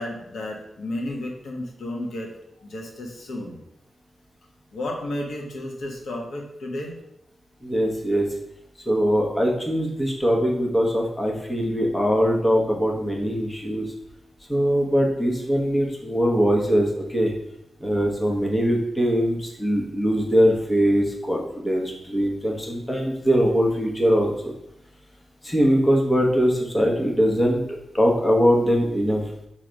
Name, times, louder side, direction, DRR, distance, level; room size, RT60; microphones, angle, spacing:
voice 1, 0.0-2.3 2.6-3.6 4.7-6.9, left 1 dB, 75° left, 1 dB, 1.3 m, -32 dB
voice 2, 7.6-8.3 8.9-13.9 14.5-17.3 17.8-24.5 25.4-29.2, equal, 15° left, 0 dB, 1.1 m, -22 dB
5.8 x 3.3 x 5.1 m, 0.79 s
wide cardioid pair, 130°, 0 cm